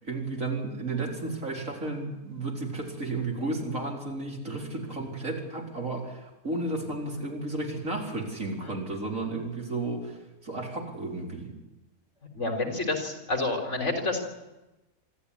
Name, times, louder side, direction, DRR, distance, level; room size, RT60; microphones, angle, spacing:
voice 1, 0.0-11.5, right 2 dB, 60° right, 0 dB, 4.5 m, -33 dB
voice 2, 12.3-14.2, left 2 dB, 55° left, 3 dB, 4.1 m, -29 dB
26.0 x 13.5 x 9.9 m, 1.0 s
omnidirectional pair, 1.5 m